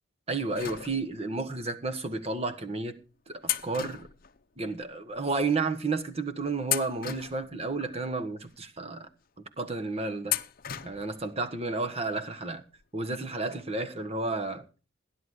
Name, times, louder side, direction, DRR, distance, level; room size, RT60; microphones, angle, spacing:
voice 1, 0.3-3.0 3.3-4.1 4.6-9.1 9.6-10.4 10.8-12.6 12.9-14.6, right 3 dB, 35° right, 1.4 m, -32 dB
sound 1, 0.5-1.4 2.2-2.3 3.4-4.9 5.2-5.3 6.0-6.2 6.6-7.9 8.5-8.6 10.2-11.2 11.5-11.6 12.8-12.9 13.2-13.3, left 12 dB, 50° left, 0.8 m, -35 dB
15.5 x 10.5 x 4.9 m
head